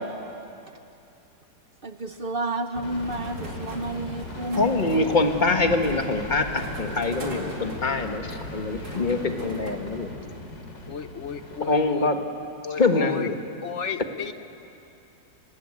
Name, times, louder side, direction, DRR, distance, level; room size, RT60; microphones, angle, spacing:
voice 1, 1.8-4.7, right 2 dB, 40° right, 7 dB, 0.8 m, -31 dB
sound 1, 2.8-11.9, left 2 dB, 85° left, 3.6 m, -38 dB
sound 2, 3.0-9.7, right 1 dB, 60° right, 3.6 m, -40 dB
voice 2, 4.6-10.1 11.6-12.2 12.8-13.4, left 3 dB, 25° left, 5 dB, 1.5 m, -24 dB
voice 3, 10.9-12.1 12.6-13.3 13.6-14.3, left 6 dB, 60° left, 11 dB, 0.8 m, -33 dB
29.5 x 19.0 x 8.5 m, 2.7 s
omnidirectional pair, 1.9 m